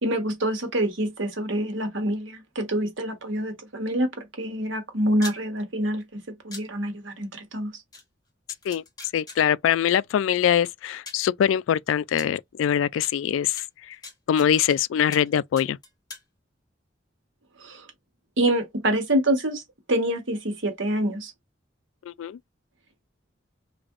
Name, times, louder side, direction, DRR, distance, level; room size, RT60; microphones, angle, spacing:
voice 1, 0.0-7.7 17.6-17.9 18.4-19.6 19.9-21.3, right 1 dB, 75° right, 1.2 m, -26 dB
sound 1, 5.1-5.4 6.5-6.6 7.9-8.0 8.5-9.4 10.4-10.5 11.1-11.3 12.2-12.3 13.0-13.1 13.6-14.8 15.1-15.3 15.6-16.2, left 3 dB, 20° left, 1.3 m, -40 dB
voice 2, 9.1-14.0 14.3-15.8 22.1-22.4, left 9 dB, 85° left, 0.3 m, -23 dB
3.2 x 2.5 x 3.6 m
head